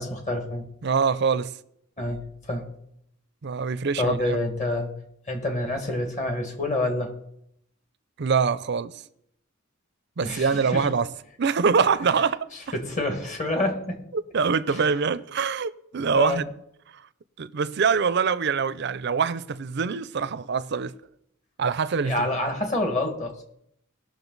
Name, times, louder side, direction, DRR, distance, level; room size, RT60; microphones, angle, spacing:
voice 1, 0.0-0.7 2.0-2.7 4.0-4.9 5.3-7.1 10.2-10.9 12.7-14.0 14.7-14.9 16.1-16.4 22.0-23.3, left 1 dB, 35° left, 1.9 m, -27 dB
voice 2, 0.8-1.6 3.4-4.4 8.2-8.9 10.2-11.1 11.4-12.5 14.1-16.5 16.9-17.0 17.4-20.9 21.6-22.3, right 5 dB, 55° right, 0.5 m, -24 dB
19.0 x 6.4 x 4.0 m
head